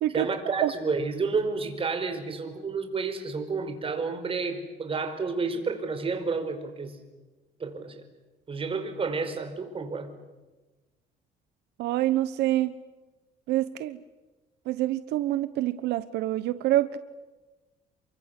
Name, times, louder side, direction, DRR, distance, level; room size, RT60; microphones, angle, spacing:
voice 1, 0.1-7.0 7.6-8.0 8.5-10.1, right 4 dB, 35° right, 7 dB, 5.0 m, -30 dB
voice 2, 11.8-12.7 13.5-14.0 14.7-17.0, right 14 dB, 85° right, 13 dB, 1.1 m, -26 dB
29.0 x 23.5 x 8.4 m, 1.2 s
cardioid pair, 110°, 17 cm